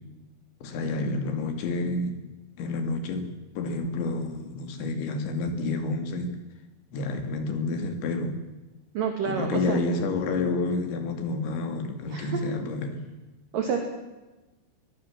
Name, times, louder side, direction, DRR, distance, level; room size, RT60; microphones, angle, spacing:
voice 1, 0.6-2.2 2.6-6.3 6.9-8.4 9.2-13.0, left 3 dB, 70° left, 6 dB, 4.9 m, -29 dB
voice 2, 8.9-9.8 12.1-12.4 13.5-13.8, right 7 dB, 55° right, 4 dB, 3.3 m, -28 dB
22.0 x 21.5 x 7.5 m, 1.1 s
omnidirectional pair, 5.6 m